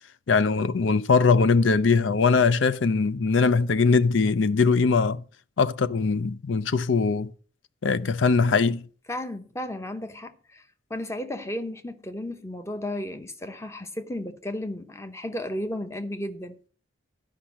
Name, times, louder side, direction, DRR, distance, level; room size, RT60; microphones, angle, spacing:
voice 1, 0.3-5.2 5.6-7.3 7.8-8.8, left 4 dB, 80° left, 0.5 m, -21 dB
voice 2, 9.1-10.6 10.9-16.6, left 1 dB, 15° left, 0.8 m, -34 dB
11.5 x 5.2 x 7.2 m
head